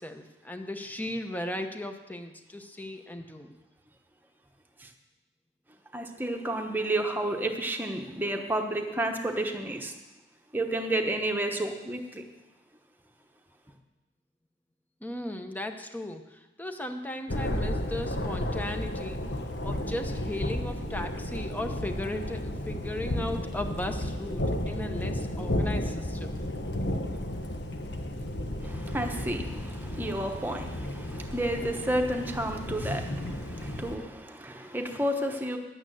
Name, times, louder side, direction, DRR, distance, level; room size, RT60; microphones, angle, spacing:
voice 1, 0.0-3.5 15.0-19.2 19.6-26.4, left 1 dB, 10° left, 0.9 m, -36 dB
voice 2, 5.9-9.9 10.5-12.2 28.6-35.6, right 1 dB, 10° right, 1.1 m, -31 dB
Thunder, 17.3-34.0, left 1 dB, 70° left, 1.2 m, -33 dB
10.5 x 8.9 x 7.7 m
head